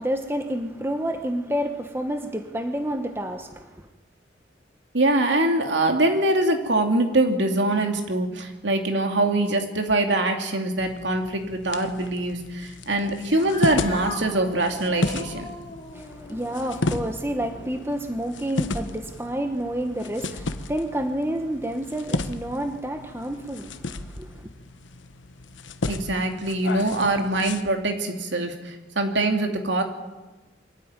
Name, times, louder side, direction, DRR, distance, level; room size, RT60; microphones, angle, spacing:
voice 1, 0.0-3.9 15.9-24.5, right 1 dB, 10° right, 1.0 m, -29 dB
voice 2, 4.9-15.5 25.9-29.8, right 2 dB, 70° right, 2.6 m, -23 dB
sound 1, 10.8-27.6, left 2 dB, 75° left, 1.1 m, -33 dB
Cat, 13.3-17.9, left 2 dB, 30° left, 2.8 m, -40 dB
23.5 x 13.5 x 9.6 m
head